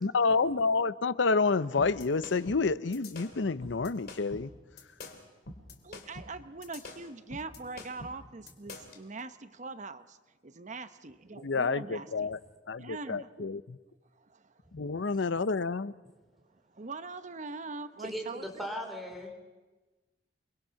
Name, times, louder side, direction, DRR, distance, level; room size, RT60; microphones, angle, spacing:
voice 1, 0.0-4.5 11.4-12.4 12.7-13.8 14.7-15.9, left 4 dB, 75° left, 16 dB, 0.7 m, -29 dB
sound 1, 1.8-9.0, left 2 dB, 55° left, 2.8 m, -46 dB
voice 2, 5.8-10.2 10.4-12.3 12.8-13.6 14.2-14.6 16.5-18.5, right 3 dB, 40° right, 11 dB, 0.9 m, -43 dB
voice 3, 18.0-19.4, equal, ahead, 1 dB, 3.8 m, -38 dB
29.0 x 22.0 x 5.8 m, 1.2 s
head